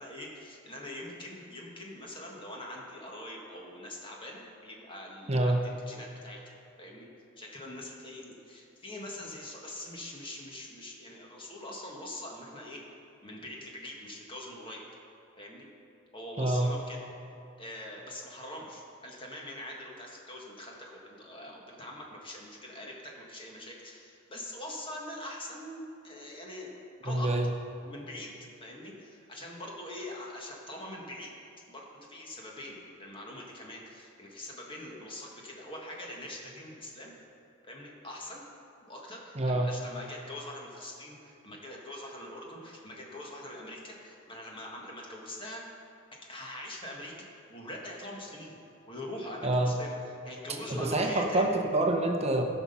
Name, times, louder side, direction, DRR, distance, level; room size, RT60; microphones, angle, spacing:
voice 1, 0.0-5.6 5.9-6.4 6.8-7.1 7.4-12.8 13.2-14.8 15.4-15.7 16.1-17.0 17.6-27.3 27.8-28.3 28.6-31.3 31.7-37.1 37.6-38.4 38.8-45.6 46.3-47.1 47.5-48.6 48.9-49.9 50.2-51.5, left 1 dB, 25° left, -2 dB, 1.6 m, -43 dB
voice 2, 5.3-5.6 16.4-16.7 27.1-27.5 39.4-39.7 49.4-49.7 50.7-52.4, right 1 dB, 30° right, 3 dB, 0.8 m, -26 dB
15.0 x 6.0 x 5.5 m, 2.6 s
head